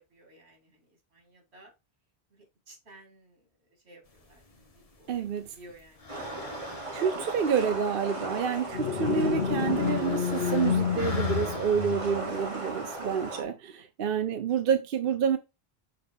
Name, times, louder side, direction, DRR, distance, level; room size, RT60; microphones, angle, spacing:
voice 1, 0.0-1.7 2.3-7.0 12.6-12.7 13.8-13.9, right 1 dB, 80° right, 2.5 m, -56 dB
sound 1, 4.1-13.3, left 3 dB, 35° left, 1.0 m, -46 dB
voice 2, 5.1-5.4 6.9-15.4, right 7 dB, 60° right, 0.8 m, -28 dB
sound 2, 6.1-13.4, right 2 dB, 30° right, 1.4 m, -37 dB
sound 3, 8.7-12.4, left 7 dB, 70° left, 1.0 m, -29 dB
6.4 x 4.2 x 3.5 m
omnidirectional pair, 1.1 m